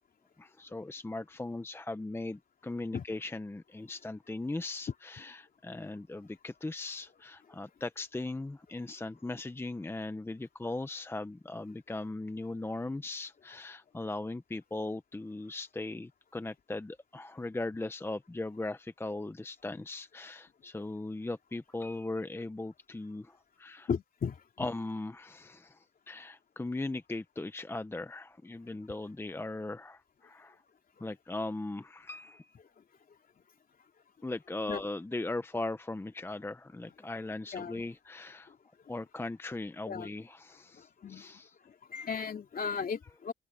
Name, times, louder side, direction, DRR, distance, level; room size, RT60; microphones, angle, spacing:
voice 1, 0.4-23.9 24.6-30.6 31.0-32.5 34.2-38.5 38.9-41.6, left 2 dB, 10° left, 0.9 m, -39 dB
voice 2, 23.9-24.4 34.7-34.8 37.5-37.8 38.5-38.6 39.9-40.1 40.7-41.3 41.9-43.3, left 6 dB, 45° left, 2.8 m, -36 dB
open air
cardioid pair, 90°, 20 cm